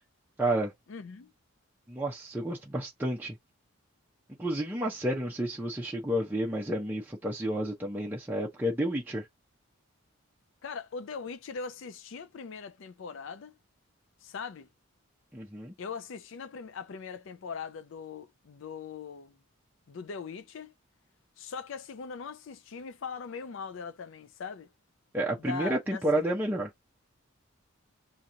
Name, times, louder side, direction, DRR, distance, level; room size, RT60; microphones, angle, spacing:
voice 1, 0.4-0.7 1.9-3.4 4.4-9.3 15.3-15.7 25.1-26.7, right 1 dB, 10° right, 0.5 m, -30 dB
voice 2, 0.9-1.3 10.6-13.5 14.2-14.7 15.8-19.4 19.9-20.7 21.4-24.7 25.4-26.3, left 5 dB, 60° left, 0.4 m, -40 dB
2.9 x 2.6 x 3.7 m
head